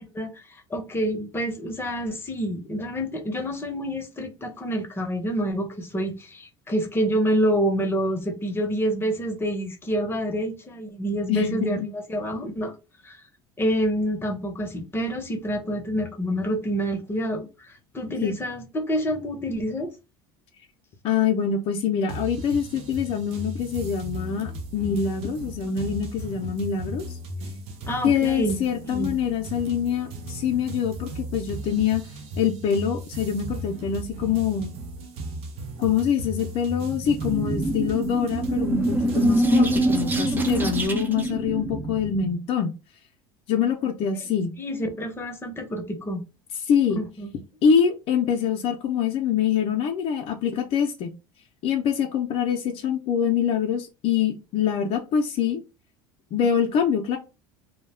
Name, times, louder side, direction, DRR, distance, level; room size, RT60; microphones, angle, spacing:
voice 1, 0.7-12.7 13.0-13.2 13.6-19.9 27.9-29.1 44.1-44.2 44.6-46.2 46.9-47.3, equal, 20° left, 0.8 m, -27 dB
voice 2, 11.3-11.9 18.2-18.4 21.0-27.0 28.0-32.0 32.4-34.7 35.8-42.7 43.5-44.6 46.7-47.1 47.6-51.1 51.6-55.6 56.3-57.2, left 7 dB, 55° left, 0.5 m, -25 dB
sound 1, 22.1-40.8, right 1 dB, 60° right, 0.6 m, -36 dB
sound 2, 36.9-42.3, right 1 dB, 15° right, 0.5 m, -24 dB
2.3 x 2.1 x 3.3 m
supercardioid pair, 90°, 12 cm